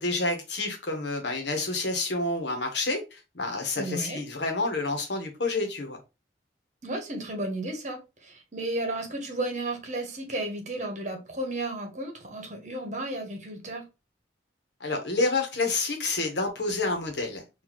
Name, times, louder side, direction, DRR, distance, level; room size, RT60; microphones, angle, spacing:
voice 1, 0.0-6.0 14.8-17.4, left 3 dB, 80° left, 1.2 m, -29 dB
voice 2, 3.8-4.2 6.8-13.8, right 1 dB, 45° right, 1.2 m, -33 dB
4.1 x 2.7 x 3.0 m
head